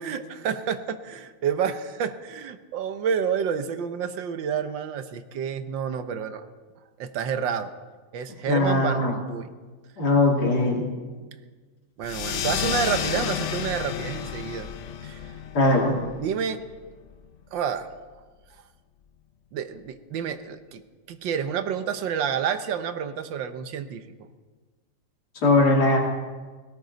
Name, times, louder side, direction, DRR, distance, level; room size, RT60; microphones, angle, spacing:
voice 1, 0.0-6.4 7.0-7.7 8.1-9.5 12.0-14.7 15.0-15.2 16.2-16.6 17.5-17.9 19.5-20.8 21.1-24.3, right 7 dB, 75° right, 10 dB, 1.6 m, -29 dB
voice 2, 8.5-9.1 10.0-10.9 15.5-16.0 25.4-26.0, left 2 dB, 55° left, 0 dB, 2.8 m, -20 dB
sound 1, 12.0-17.1, left 9 dB, 75° left, 0.6 m, -31 dB
18.5 x 17.0 x 4.0 m, 1.4 s
omnidirectional pair, 2.1 m